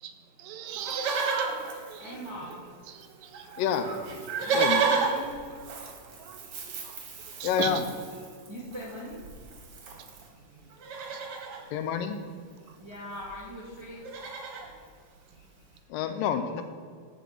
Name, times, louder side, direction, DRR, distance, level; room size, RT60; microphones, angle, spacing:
voice 1, 0.4-2.2 2.9-3.5 4.3-4.5 5.5-5.9 6.2-7.0 7.4-7.8 11.0-11.2, right 9 dB, 80° right, 8 dB, 2.4 m, -39 dB
Livestock farm animals working animals, 0.7-2.7 3.0-3.1 3.3-10.3 10.7-11.6 12.8-12.9 13.1-13.4 13.7-14.7 15.3-15.4, right 5 dB, 60° right, 1.5 m, -32 dB
voice 2, 2.0-2.6 4.4-5.4 8.5-9.2 12.8-14.0, equal, 30° right, -6 dB, 0.5 m, -41 dB
voice 3, 3.6-3.9 4.5-4.8 7.4-7.8 11.7-12.2 15.9-16.6, left 8 dB, 80° left, 8 dB, 2.2 m, -28 dB
11.5 x 4.2 x 7.4 m, 2.1 s
omnidirectional pair, 4.2 m